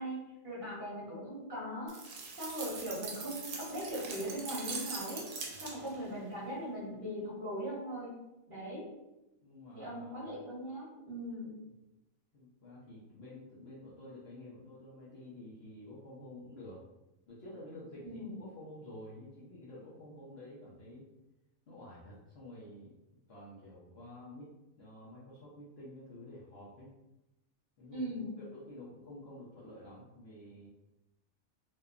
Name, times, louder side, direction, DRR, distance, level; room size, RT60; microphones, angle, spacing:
voice 1, 0.0-2.0 2.4-5.3 5.6-8.1 8.5-8.8 9.7-11.5 18.0-18.4 27.9-28.3, equal, 40° right, -8 dB, 1.1 m, -40 dB
sound 1, 1.9-6.1, right 4 dB, 90° right, 1.0 m, -42 dB
voice 2, 5.5-6.1 9.4-10.2 12.3-16.8 17.3-21.1 21.7-23.0 23.3-26.9 27.8-28.1 28.4-30.7, left 1 dB, 60° left, -7 dB, 0.7 m, -50 dB
2.9 x 2.1 x 2.3 m, 0.95 s
omnidirectional pair, 1.4 m